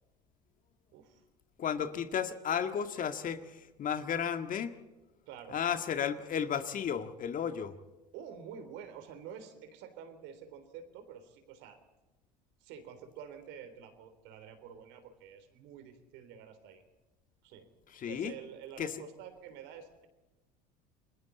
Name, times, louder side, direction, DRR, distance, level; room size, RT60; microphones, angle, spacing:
voice 1, 0.9-1.2 5.3-5.6 8.1-11.8 12.6-16.8 17.4-17.7 18.1-20.1, right 8 dB, 60° right, 9 dB, 3.5 m, -48 dB
voice 2, 1.6-4.7 5.5-7.7 17.9-18.3 18.8-18.9, left 8 dB, 40° left, 9 dB, 1.7 m, -33 dB
29.5 x 21.5 x 4.1 m, 1.1 s
hypercardioid pair, 75°, 21 cm